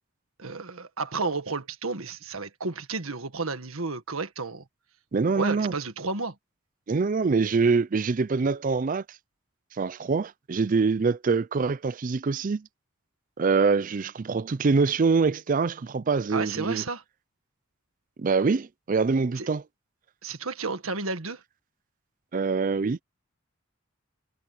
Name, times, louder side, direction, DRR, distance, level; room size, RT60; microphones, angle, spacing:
voice 1, 0.4-4.6 5.3-6.4 16.3-17.0 19.4-19.5 20.2-21.4, right 3 dB, 80° right, 1.7 m, -32 dB
voice 2, 5.1-5.7 6.9-9.0 9.8-12.7 13.4-16.8 18.2-19.6 22.3-23.0, right 4 dB, 40° right, 0.4 m, -24 dB
head